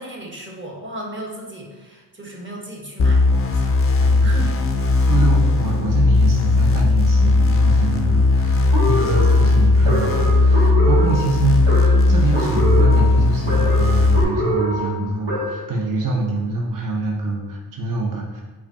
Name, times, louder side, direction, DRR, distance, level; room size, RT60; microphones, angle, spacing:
voice 1, 0.0-3.8 4.2-4.6, right 1 dB, 25° right, -1 dB, 1.0 m, -35 dB
sound 1, 3.0-14.2, left 3 dB, 30° left, 0.4 m, -17 dB
voice 2, 4.0-4.5 5.1-18.4, right 3 dB, 45° right, -1 dB, 0.7 m, -25 dB
sound 2, 8.7-15.8, right 1 dB, 80° right, 1.2 m, -25 dB
4.8 x 2.3 x 2.6 m, 1.3 s
supercardioid pair, 40°, 47 cm